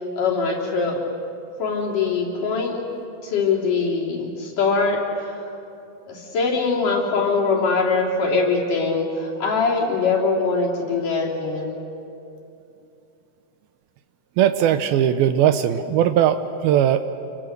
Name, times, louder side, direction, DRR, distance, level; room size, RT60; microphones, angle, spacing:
voice 1, 0.2-1.0 1.6-2.8 3.2-5.4 6.1-11.8, left 4 dB, 55° left, -3 dB, 4.7 m, -22 dB
voice 2, 14.4-17.1, right 10 dB, 80° right, 10 dB, 2.4 m, -19 dB
29.0 x 25.0 x 6.7 m, 2.7 s
omnidirectional pair, 4.6 m